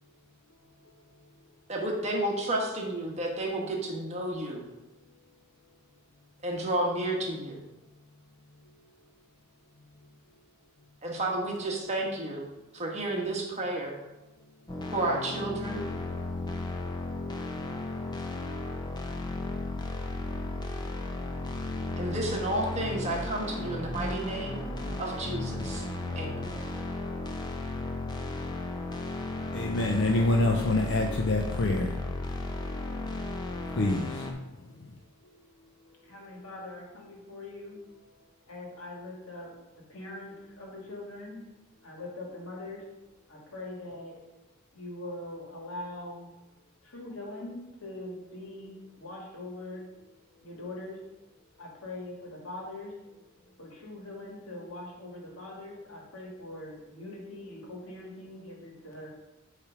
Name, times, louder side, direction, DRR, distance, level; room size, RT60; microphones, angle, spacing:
voice 1, 1.7-4.6 6.4-7.6 11.0-12.5 12.7-14.0 14.9-15.8 22.0-24.6 25.0-25.8 26.1-26.4, right 1 dB, 35° right, -1 dB, 1.2 m, -31 dB
sound 1, 14.7-34.3, left 2 dB, 20° left, 0.7 m, -35 dB
voice 2, 29.5-32.0 33.7-34.3, left 2 dB, 60° left, 1 dB, 0.6 m, -26 dB
voice 3, 36.0-37.8 38.5-41.4 41.8-42.8 43.3-44.2 44.7-46.3 46.8-49.9 50.4-51.0 51.6-52.9 53.6-59.1, left 2 dB, 90° left, -1 dB, 1.8 m, -42 dB
8.5 x 3.3 x 4.9 m, 1.0 s
head